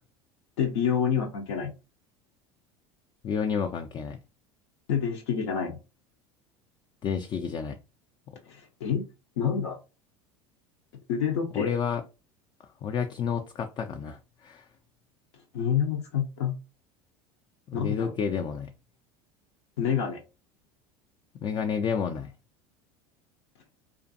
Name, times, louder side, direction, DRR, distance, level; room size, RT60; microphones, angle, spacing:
voice 1, 0.6-1.7 4.9-5.8 8.5-9.1 9.4-9.8 11.1-11.7 15.5-16.5 17.7-18.1 19.8-20.2, left 7 dB, 75° left, 0.6 m, -27 dB
voice 2, 3.2-4.2 7.0-7.8 11.5-12.0 12.8-14.7 17.7-18.7 21.3-22.3, left 6 dB, 35° left, 0.3 m, -30 dB
2.4 x 2.4 x 2.6 m
hypercardioid pair, 85°, 14 cm